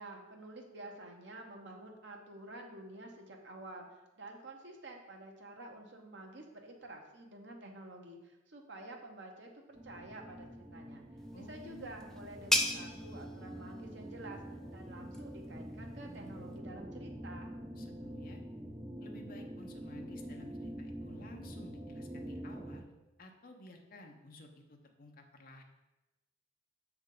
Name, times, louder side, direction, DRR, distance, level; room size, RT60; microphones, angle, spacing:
voice 1, 0.0-11.0 11.3-14.4 14.7-17.5, right 2 dB, 70° right, 2 dB, 1.0 m, -49 dB
sound 1, 9.7-22.8, right 1 dB, 25° right, 0.8 m, -46 dB
sound 2, 11.2-16.6, left 1 dB, 5° left, 0.3 m, -38 dB
voice 2, 11.3-11.9 17.8-18.4 19.0-22.9 23.2-25.6, left 1 dB, 50° left, 3 dB, 0.8 m, -54 dB
6.6 x 3.5 x 5.2 m, 1.0 s
head